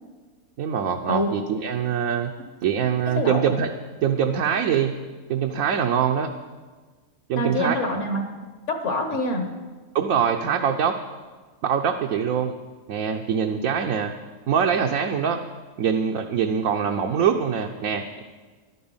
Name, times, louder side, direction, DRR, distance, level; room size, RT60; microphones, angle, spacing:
voice 1, 0.6-2.3 2.6-3.7 4.0-4.9 5.3-6.3 7.3-7.8 9.9-11.0 11.6-12.6 12.9-14.1 14.5-15.4 15.8-18.2, right 7 dB, 70° right, 2 dB, 1.2 m, -23 dB
voice 2, 7.4-8.2 8.7-9.5, left 1 dB, 55° left, 5 dB, 1.8 m, -25 dB
14.0 x 11.0 x 5.5 m, 1.4 s
omnidirectional pair, 1.6 m